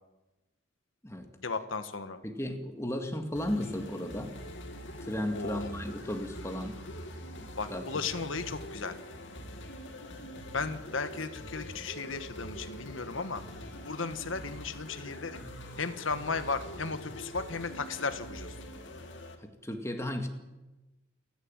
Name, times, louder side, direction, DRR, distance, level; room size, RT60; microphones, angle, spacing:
voice 1, 1.4-2.2 5.3-5.7 7.6-9.0 10.5-13.4 13.8-15.4 15.8-18.5, left 4 dB, 80° left, 9 dB, 1.4 m, -35 dB
voice 2, 2.2-4.4 5.0-6.8 7.4-7.9 19.4-20.3, left 1 dB, 15° left, 5 dB, 2.0 m, -35 dB
sound 1, 3.4-19.4, equal, 65° left, 2.7 m, -44 dB
29.0 x 11.0 x 9.0 m, 1.1 s
head